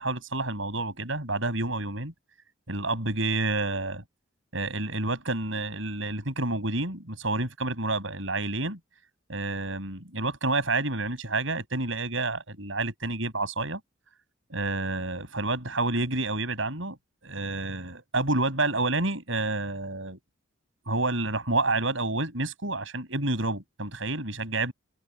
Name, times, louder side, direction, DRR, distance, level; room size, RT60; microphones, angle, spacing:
voice 1, 0.0-2.1 2.7-4.0 4.5-8.8 9.3-13.8 14.5-17.0 17.2-20.2 20.9-24.7, right 2 dB, 65° right, 7.8 m, -29 dB
open air
head